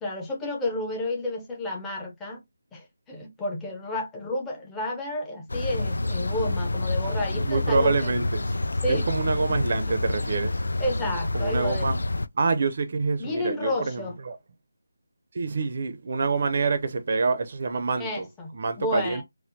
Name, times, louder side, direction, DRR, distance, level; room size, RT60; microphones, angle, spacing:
voice 1, 0.0-2.4 2.7-8.1 8.8-9.1 9.7-9.8 10.1-10.2 10.8-11.9 13.2-14.1 18.0-19.2, left 1 dB, 5° left, 0.6 m, -31 dB
sound 1, 5.5-12.3, left 2 dB, 80° left, 0.4 m, -28 dB
voice 2, 7.4-8.6 8.9-10.6 11.3-12.0 12.3-14.4 15.3-18.3 18.5-19.2, right 4 dB, 40° right, 0.5 m, -26 dB
4.3 x 2.0 x 2.6 m
figure-of-eight pair, 175°, 0 cm